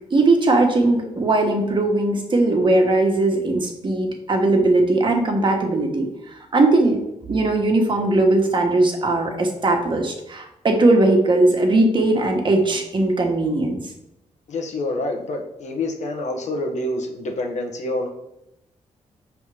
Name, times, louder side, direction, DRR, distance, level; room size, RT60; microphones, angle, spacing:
voice 1, 0.1-7.0 7.3-13.8, right 2 dB, 40° right, 2 dB, 1.3 m, -19 dB
voice 2, 14.5-18.1, left 2 dB, 70° left, 3 dB, 1.1 m, -27 dB
5.5 x 3.5 x 4.8 m, 0.83 s
cardioid pair, 90°, 12 cm